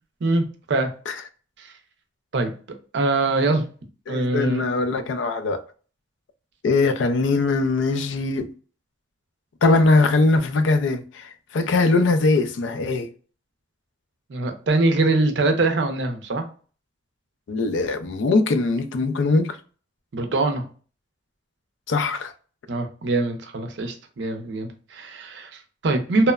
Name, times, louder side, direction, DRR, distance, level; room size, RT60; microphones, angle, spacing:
voice 1, 0.2-0.9 1.6-1.7 2.3-2.5 2.9-3.7 4.1-4.6 14.3-16.4 20.1-20.6 22.7-26.3, right 2 dB, 65° right, 0.5 m, -23 dB
voice 2, 4.1-5.6 6.6-8.5 9.6-13.1 17.5-19.6 21.9-22.3, left 3 dB, 75° left, 0.4 m, -21 dB
2.9 x 2.0 x 2.2 m
head